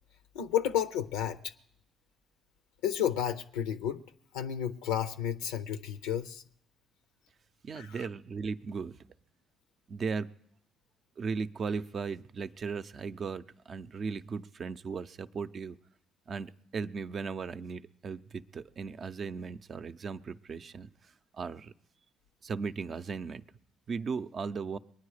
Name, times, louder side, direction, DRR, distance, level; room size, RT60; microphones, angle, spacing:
voice 1, 0.3-1.5 2.8-4.0 4.3-6.4 7.8-8.1, left 10 dB, 85° left, 0.5 m, -32 dB
voice 2, 7.6-9.0 9.9-10.3 11.2-15.8 16.3-20.9 21.4-21.7 22.4-23.4 23.9-24.8, right 5 dB, 50° right, 0.5 m, -37 dB
22.5 x 9.5 x 4.9 m
hypercardioid pair, 55°, 0 cm